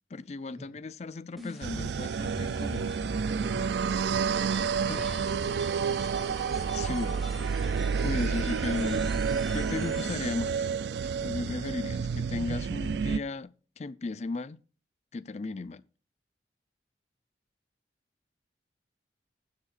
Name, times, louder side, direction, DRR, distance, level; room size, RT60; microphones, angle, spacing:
voice 1, 0.1-3.0 4.9-5.1 6.7-7.2 8.0-9.1 9.5-10.7 11.0-14.6 15.1-15.8, left 3 dB, 40° left, 0.4 m, -35 dB
sound 1, 1.4-10.5, equal, ahead, 2.2 m, -42 dB
sound 2, 1.6-13.2, right 6 dB, 75° right, 0.4 m, -30 dB
voice 2, 3.2-3.9 4.8-5.9 7.8-8.1, equal, 20° right, 5.8 m, -49 dB
19.0 x 7.3 x 2.4 m
head